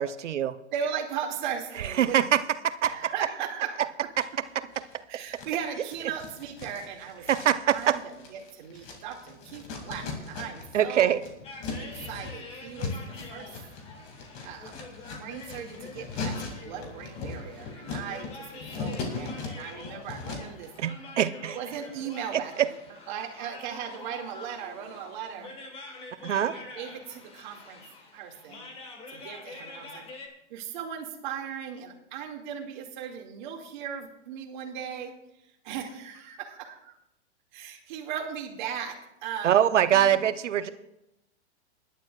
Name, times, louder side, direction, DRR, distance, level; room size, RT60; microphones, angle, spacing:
voice 1, 0.0-0.5 2.0-3.1 4.2-4.3 7.3-8.0 10.7-11.2 20.8-21.6 26.2-26.5 39.4-40.7, right 10 dB, 90° right, 12 dB, 0.9 m, -24 dB
voice 2, 0.7-2.2 2.8-4.1 5.1-11.1 11.8-13.6 14.4-14.8 15.2-20.7 21.5-25.5 26.5-27.8 28.1-28.7 29.1-30.0 30.5-37.0 37.5-39.6 39.9-40.2 40.5-40.7, right 8 dB, 40° right, 1 dB, 2.3 m, -37 dB
sound 1, 4.2-5.0 5.3-10.8 11.1-20.6, left 4 dB, 35° left, 2.6 m, -39 dB
sound 2, 11.4-30.3, left 3 dB, 15° left, 1.6 m, -46 dB
21.5 x 11.5 x 2.5 m, 0.85 s
hypercardioid pair, 155°, 35 cm